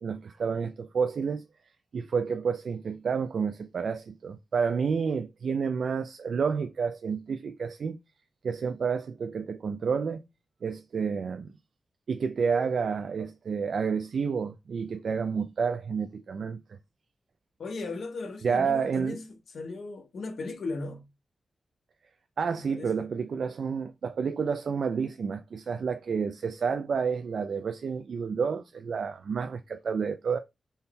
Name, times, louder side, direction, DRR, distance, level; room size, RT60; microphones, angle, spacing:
voice 1, 0.0-1.5 1.9-8.0 8.4-10.2 10.6-11.5 12.1-16.6 18.4-19.2 22.4-30.4, right 6 dB, 65° right, 0.3 m, -30 dB
voice 2, 17.6-19.2 19.5-21.0 22.5-23.0, left 3 dB, 75° left, 1.0 m, -37 dB
4.1 x 2.2 x 3.6 m
wide cardioid pair, 125°, 0 cm